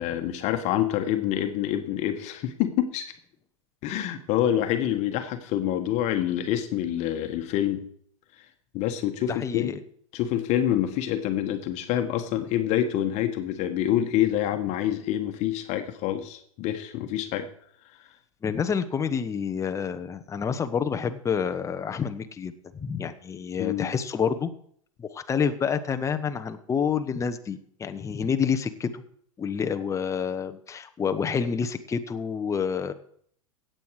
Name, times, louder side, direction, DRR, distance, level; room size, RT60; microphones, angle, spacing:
voice 1, 0.0-3.1 3.8-7.8 8.7-9.7 10.1-17.5 23.6-23.9, left 11 dB, 40° left, 7 dB, 1.4 m, -26 dB
voice 2, 9.2-9.8 18.4-24.5 25.0-29.0 29.4-32.9, left 6 dB, 15° left, 8 dB, 1.0 m, -28 dB
16.5 x 7.8 x 4.8 m, 0.64 s
hypercardioid pair, 100°, 18 cm